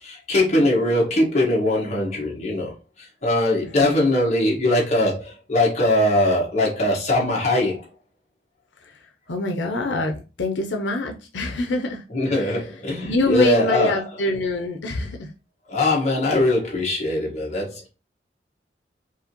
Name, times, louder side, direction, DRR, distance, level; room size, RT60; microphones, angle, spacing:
voice 1, 0.0-2.7 3.2-7.8 12.1-13.9 15.7-17.9, left 1 dB, 40° left, 1.5 m, -21 dB
voice 2, 9.3-12.0 12.4-12.7 13.0-15.3, left 2 dB, 90° left, 0.6 m, -25 dB
4.7 x 2.8 x 2.9 m
head